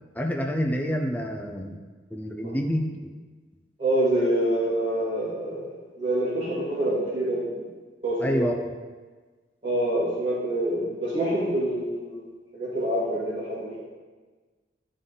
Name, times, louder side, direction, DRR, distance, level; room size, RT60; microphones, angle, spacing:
voice 1, 0.2-1.8 2.1-3.1 8.2-8.7, equal, 10° left, 2 dB, 0.5 m, -28 dB
voice 2, 3.8-7.4 8.0-8.5 9.6-12.2 12.5-13.8, right 1 dB, 35° right, -14 dB, 2.1 m, -26 dB
10.5 x 3.8 x 3.9 m, 1.4 s
head